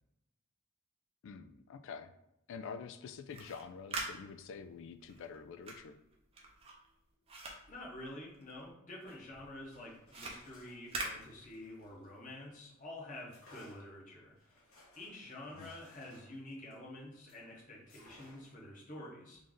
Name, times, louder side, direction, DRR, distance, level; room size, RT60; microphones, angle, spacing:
voice 1, 1.2-2.1 2.5-6.0 15.5-15.7, left 5 dB, 60° left, 10 dB, 0.3 m, -47 dB
sound 1, 3.2-8.7 9.0-11.9, right 2 dB, 30° right, 0.6 m, -45 dB
voice 2, 7.7-14.6 14.9-19.4, left 1 dB, 35° left, -3 dB, 1.0 m, -48 dB
sound 2, 9.7-12.6 13.3-17.5 17.9-18.7, left 1 dB, 80° left, 1.2 m, -62 dB
3.2 x 2.6 x 3.8 m, 0.83 s
head